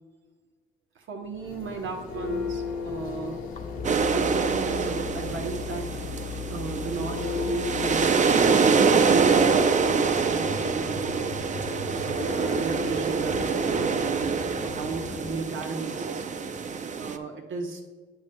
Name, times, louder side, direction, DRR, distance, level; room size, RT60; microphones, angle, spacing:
voice 1, 0.9-3.4 3.8-6.0 6.5-11.3 12.0-16.4 16.7-17.8, right 4 dB, 65° right, 2 dB, 0.9 m, -35 dB
Church bell, 1.2-15.5, left 4 dB, 85° left, 1.4 m, -37 dB
sound 1, 2.0-10.6, left 11 dB, 40° left, 0.7 m, -40 dB
sound 2, 3.8-17.2, right 5 dB, 35° right, 0.5 m, -25 dB
8.3 x 8.0 x 2.2 m, 1.4 s
cardioid pair, 90°, 21 cm